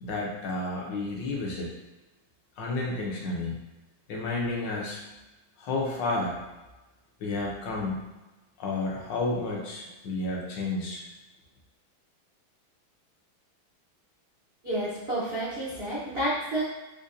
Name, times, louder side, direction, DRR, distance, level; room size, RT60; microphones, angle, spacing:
voice 1, 0.0-1.7 2.6-3.5 4.1-5.0 5.6-6.4 7.2-8.0 8.6-11.0, left 2 dB, 70° left, -2 dB, 1.2 m, -31 dB
voice 2, 14.6-16.6, right 1 dB, 75° right, -9 dB, 0.5 m, -30 dB
5.1 x 2.1 x 2.5 m, 1.1 s
omnidirectional pair, 2.2 m